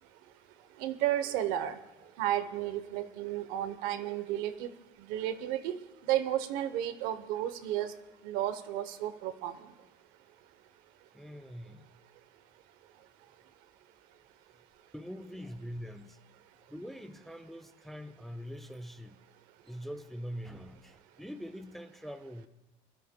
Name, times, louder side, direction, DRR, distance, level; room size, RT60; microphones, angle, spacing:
voice 1, 0.8-1.8 2.2-4.7 5.1-5.8 6.1-7.9 8.2-9.5, right 12 dB, 75° right, 12 dB, 0.9 m, -32 dB
voice 2, 11.1-11.9 14.9-16.2 16.7-19.2 19.6-22.5, equal, ahead, 9 dB, 0.5 m, -43 dB
25.0 x 12.5 x 2.3 m, 1.1 s
cardioid pair, 135°, 15 cm